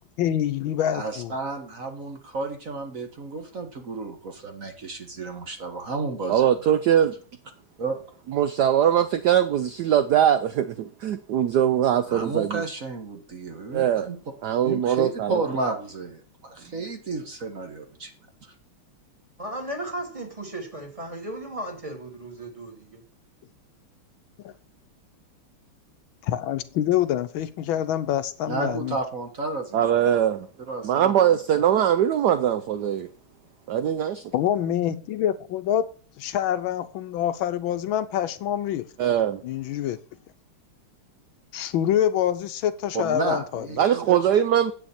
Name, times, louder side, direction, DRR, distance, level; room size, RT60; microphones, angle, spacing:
voice 1, 0.2-1.3 24.4-24.5 26.2-29.0 34.3-35.9 36.2-38.9 39.4-40.0 41.5-43.7, left 11 dB, 75° left, 1.4 m, -26 dB
voice 2, 0.9-6.7 7.8-8.0 12.1-14.2 14.6-18.1 18.4-18.5 28.5-30.2 30.7-31.6 42.9-44.2, right 3 dB, 45° right, 1.5 m, -32 dB
voice 3, 6.3-7.1 8.3-12.6 13.7-14.1 14.4-15.4 29.7-30.5 30.8-33.1 33.7-34.2 39.0-39.4 43.8-44.7, right 10 dB, 70° right, 1.0 m, -21 dB
voice 4, 19.4-23.0, right 1 dB, 15° right, 2.2 m, -35 dB
9.9 x 8.1 x 4.2 m
omnidirectional pair, 2.3 m